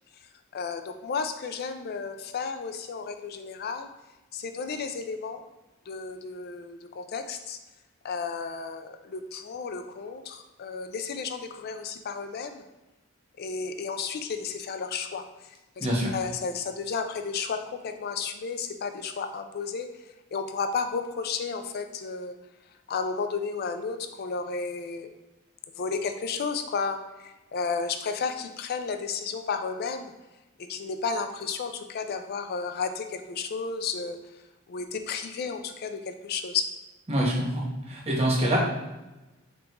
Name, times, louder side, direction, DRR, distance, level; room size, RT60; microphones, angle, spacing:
voice 1, 0.5-3.9 4.3-5.4 5.9-7.6 8.0-12.6 13.4-15.2 15.8-15.9 16.1-19.9 20.3-22.3 22.9-25.1 25.8-30.1 30.7-34.2 34.7-36.7, left 5 dB, 50° left, 8 dB, 0.4 m, -32 dB
voice 2, 15.8-16.1 37.1-38.6, right 1 dB, 30° right, -3 dB, 1.0 m, -25 dB
3.7 x 3.6 x 2.9 m, 1.0 s
head